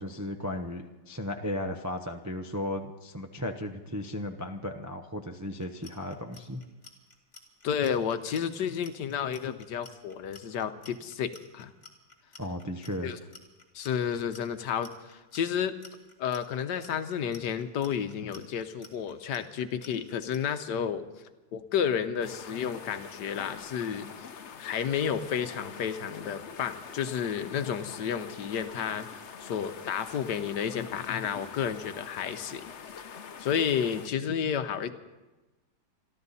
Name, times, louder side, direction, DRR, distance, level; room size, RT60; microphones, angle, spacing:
voice 1, 0.0-6.6 12.4-13.1, left 1 dB, 25° right, 3 dB, 0.4 m, -35 dB
Clock, 5.6-20.4, left 3 dB, 25° left, 2.5 m, -52 dB
voice 2, 7.6-11.7 13.0-13.2 13.7-15.8 16.2-21.0 21.5-24.1 24.6-29.1 29.4-34.9, left 8 dB, 75° left, 10 dB, 1.4 m, -31 dB
sound 1, 22.2-34.1, left 6 dB, 50° left, 1.0 m, -45 dB
27.0 x 12.5 x 4.2 m, 1.1 s
omnidirectional pair, 1.9 m